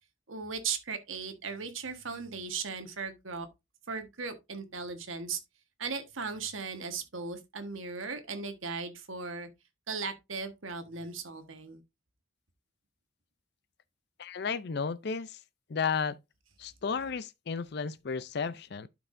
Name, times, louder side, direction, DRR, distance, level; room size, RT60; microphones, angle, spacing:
voice 1, 0.3-3.5 3.9-5.4 5.8-9.5 9.9-11.8, right 5 dB, 80° right, 1.4 m, -37 dB
voice 2, 14.2-15.4 15.7-16.2 16.6-18.9, left 5 dB, 55° left, 0.5 m, -33 dB
12.0 x 4.7 x 2.6 m
head